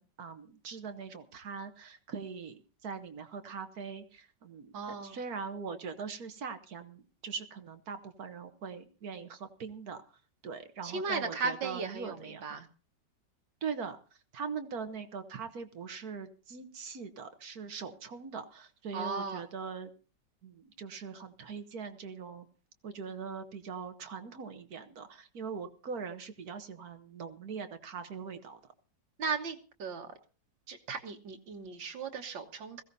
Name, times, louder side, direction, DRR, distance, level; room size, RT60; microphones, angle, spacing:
voice 1, 0.0-4.7 5.0-10.2 10.4-12.6 13.6-14.0 14.3-19.9 20.4-22.5 22.8-28.6, right 5 dB, 55° right, 9 dB, 1.5 m, -41 dB
voice 2, 4.7-5.2 10.8-12.7 18.9-19.5 29.2-30.1 30.7-32.8, right 4 dB, 85° right, 5 dB, 2.2 m, -36 dB
20.5 x 15.5 x 2.7 m, 0.37 s
omnidirectional pair, 2.0 m